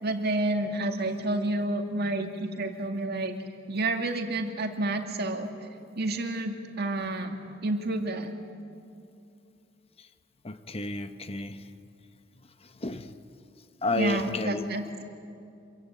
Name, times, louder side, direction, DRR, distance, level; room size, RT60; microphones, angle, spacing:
voice 1, 0.0-3.4 3.7-5.5 6.0-8.3 13.9-14.9, right 2 dB, 55° right, 2.4 m, -29 dB
voice 2, 10.4-11.6 12.8-13.1 13.8-14.7, left 2 dB, 30° left, 0.9 m, -31 dB
26.5 x 23.5 x 9.0 m
head